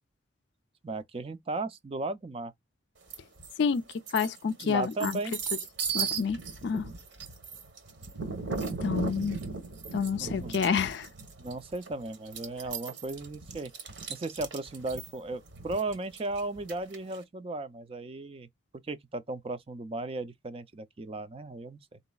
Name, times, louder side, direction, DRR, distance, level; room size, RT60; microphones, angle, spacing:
voice 1, 0.8-2.5 4.6-5.4 10.2-10.6 11.4-13.7 14.1-18.5 18.9-22.0, right 2 dB, 30° right, 0.4 m, -36 dB
sound 1, 3.1-3.5 3.9-17.2, right 5 dB, 65° right, 1.0 m, -37 dB
voice 2, 4.1-5.2 5.9-6.9 8.8-9.4 9.9-11.1, left 6 dB, 60° left, 0.4 m, -29 dB
4.0 x 3.9 x 2.2 m
head